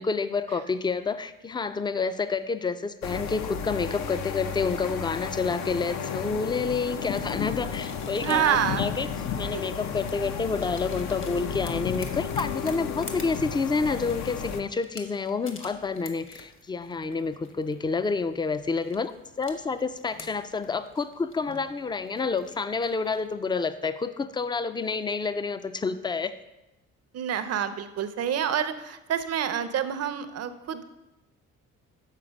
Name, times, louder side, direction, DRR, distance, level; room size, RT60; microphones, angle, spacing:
voice 1, 0.0-9.1 9.4-19.1 19.4-26.4, left 4 dB, 15° left, 12 dB, 0.4 m, -29 dB
sound 1, 3.0-14.6, left 7 dB, 65° left, 0.6 m, -33 dB
sound 2, 6.7-23.3, left 4 dB, 40° left, 1.1 m, -49 dB
voice 2, 8.2-8.8 9.5-9.6 27.1-30.8, right 9 dB, 55° right, 11 dB, 0.6 m, -27 dB
7.3 x 4.2 x 5.1 m, 0.97 s
cardioid pair, 90°, 30 cm